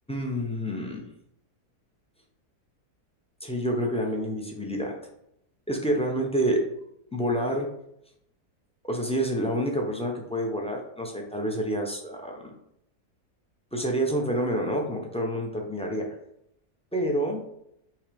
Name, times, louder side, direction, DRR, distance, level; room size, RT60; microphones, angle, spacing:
voice 1, 0.1-1.1 3.4-4.9 5.7-6.6 7.1-7.7 8.8-12.5 13.7-16.1 16.9-17.5, equal, 5° left, 0 dB, 0.5 m, -28 dB
5.8 x 3.2 x 5.1 m, 0.78 s
omnidirectional pair, 1.7 m